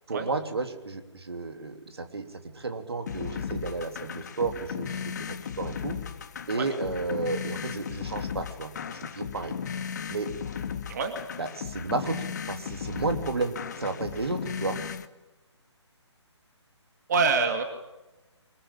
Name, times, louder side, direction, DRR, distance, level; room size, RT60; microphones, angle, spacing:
voice 1, 0.1-2.2 2.5-6.0 6.5-9.6 10.1-10.3 11.4-14.8, right 3 dB, 60° right, 7 dB, 3.1 m, -32 dB
sound 1, 3.1-15.1, left 7 dB, 35° left, 1.3 m, -36 dB
voice 2, 17.1-17.6, right 4 dB, 35° right, 6 dB, 2.4 m, -25 dB
25.0 x 21.5 x 8.8 m, 1.0 s
figure-of-eight pair, 140°, 15 cm